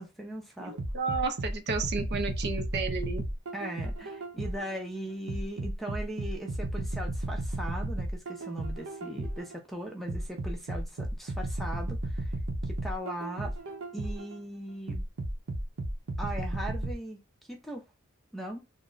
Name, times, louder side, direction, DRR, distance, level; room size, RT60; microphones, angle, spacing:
voice 1, 0.0-0.8 3.5-12.3 12.7-13.5 13.9-15.1 16.2-17.2 17.5-17.8 18.3-18.7, right 1 dB, ahead, 0.6 m, -39 dB
voice 2, 0.6-3.2, right 4 dB, 50° right, 0.5 m, -32 dB
sound 1, 0.8-4.7 5.3-9.5 10.1-14.3 14.9-16.9, right 1 dB, 85° right, 0.8 m, -34 dB
3.1 x 2.1 x 3.8 m
head